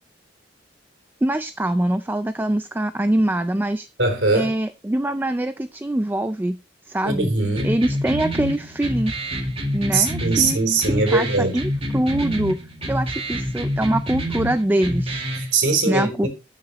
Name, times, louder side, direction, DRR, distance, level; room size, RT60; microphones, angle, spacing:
voice 1, 1.2-3.9 4.3-6.6 6.9-7.3 7.6-9.1 9.7-10.6 10.9-12.6 12.9-15.2 15.9-16.3, right 1 dB, 10° right, 0.4 m, -23 dB
voice 2, 4.0-4.5 7.0-7.7 9.9-11.6 15.3-16.3, right 3 dB, 85° right, 3.3 m, -21 dB
sound 1, 7.6-15.5, equal, 30° right, 2.1 m, -27 dB
13.0 x 6.6 x 2.9 m
head